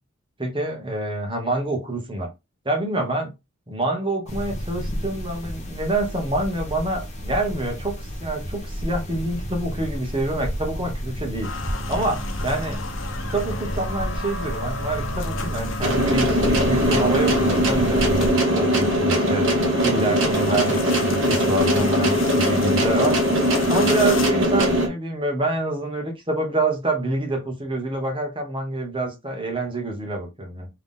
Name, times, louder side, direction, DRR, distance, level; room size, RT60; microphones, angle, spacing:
voice 1, 0.4-2.3 2.6-3.3 3.7-11.5 11.9-12.8 13.3-19.5 19.8-23.2 23.7-30.7, right 2 dB, 25° right, 1.4 m, -26 dB
sound 1, 4.3-18.3, equal, 35° left, 1.1 m, -31 dB
sound 2, 11.4-24.3, left 3 dB, 80° left, 1.0 m, -34 dB
sound 3, 15.8-24.9, equal, 80° right, 1.5 m, -20 dB
3.7 x 3.6 x 3.7 m
head